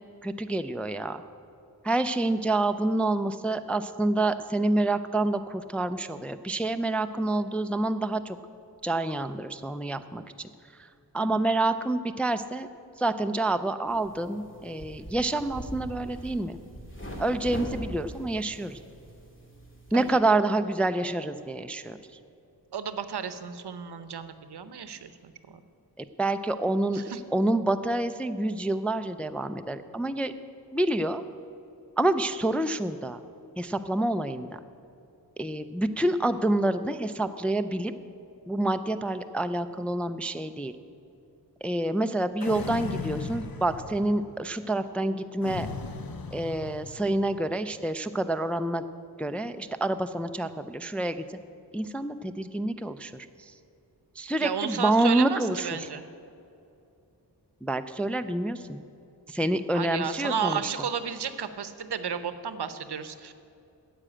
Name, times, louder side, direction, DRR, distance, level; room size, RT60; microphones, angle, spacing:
voice 1, 0.2-1.2 1.8-8.4 8.8-10.2 11.1-12.7 13.0-16.6 17.2-18.8 19.9-22.0 26.2-27.0 27.3-30.3 30.7-31.2 32.0-33.2 33.6-34.6 35.4-37.9 38.5-40.7 41.6-45.7 46.3-48.8 49.2-51.2 51.7-53.3 54.2-55.7 57.6-58.8 59.3-60.6, right 2 dB, 5° left, 9 dB, 0.3 m, -27 dB
sound 1, 13.9-20.1, equal, 30° left, 1.9 m, -42 dB
voice 2, 22.7-25.6 26.9-27.2 54.4-56.0 59.7-63.3, right 7 dB, 70° right, 12 dB, 0.7 m, -33 dB
sound 2, 42.4-44.3 45.4-47.2, left 4 dB, 60° left, 0.9 m, -36 dB
9.9 x 7.7 x 8.5 m, 2.6 s
wide cardioid pair, 80°, 41 cm